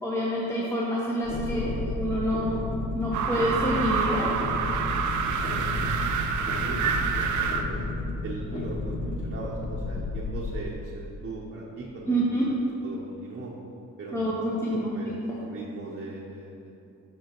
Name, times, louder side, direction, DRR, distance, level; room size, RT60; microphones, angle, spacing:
voice 1, 0.0-4.3 12.1-12.5 14.1-14.9 15.3-15.4, equal, 10° left, -6 dB, 1.0 m, -27 dB
sound 1, 1.2-10.7, left 2 dB, 30° left, 0.6 m, -32 dB
sound 2, 3.1-7.6, right 6 dB, 75° right, 0.6 m, -27 dB
voice 2, 5.2-6.3 6.6-7.8 8.2-12.4 12.8-13.5 14.0-16.8, right 3 dB, 40° right, -4 dB, 0.9 m, -40 dB
7.9 x 6.0 x 3.0 m, 2.7 s
cardioid pair, 90°, 30 cm